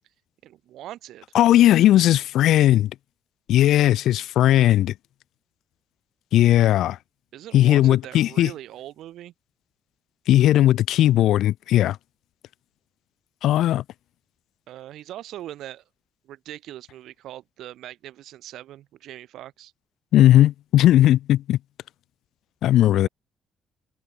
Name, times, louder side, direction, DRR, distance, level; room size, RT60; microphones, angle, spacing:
voice 1, 0.4-1.2 7.3-9.3 14.7-15.8 16.3-19.7 22.9-23.1, right 13 dB, 80° right, 4.6 m, -40 dB
voice 2, 1.3-2.9 3.5-4.9 6.3-7.0 7.5-8.5 10.3-12.0 13.4-13.8 20.1-21.6 22.6-23.1, left 13 dB, 80° left, 0.5 m, -17 dB
cardioid pair, 90°, 0 cm